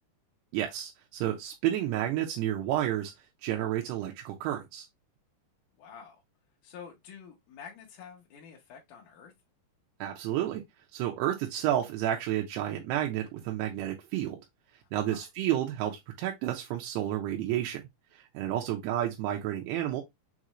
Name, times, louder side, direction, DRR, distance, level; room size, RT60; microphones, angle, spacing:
voice 1, 0.5-3.1 3.4-4.9 10.0-10.6 10.9-14.4 14.9-17.8 18.3-20.0, right 12 dB, 90° right, 2.8 m, -31 dB
voice 2, 5.8-6.2 6.6-9.3 15.0-15.2, left 7 dB, 70° left, 2.1 m, -48 dB
6.4 x 2.5 x 2.9 m
omnidirectional pair, 4.7 m